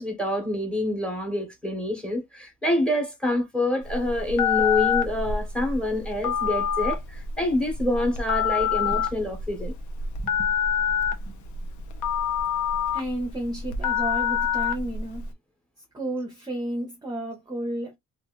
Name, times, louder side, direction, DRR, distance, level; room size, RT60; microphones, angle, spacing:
voice 1, 0.0-9.7, left 1 dB, 5° left, 1.0 m, -27 dB
Telephone, 3.8-15.3, left 7 dB, 85° left, 0.7 m, -26 dB
voice 2, 10.2-10.5 11.1-11.7 12.9-15.3 15.8-18.0, right 1 dB, 15° right, 0.6 m, -33 dB
2.9 x 2.5 x 2.9 m
wide cardioid pair, 165°, 29 cm